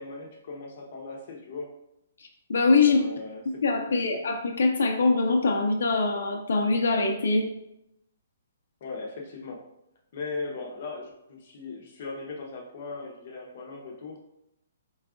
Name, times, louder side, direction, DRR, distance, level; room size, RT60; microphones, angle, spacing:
voice 1, 0.0-1.7 2.8-3.9 8.8-9.6 10.1-14.2, left 3 dB, 45° left, 0 dB, 0.8 m, -38 dB
voice 2, 2.5-3.0 3.6-7.5, left 3 dB, 80° left, 3 dB, 0.6 m, -23 dB
4.0 x 2.3 x 3.7 m, 0.83 s
hypercardioid pair, 160°, 0 cm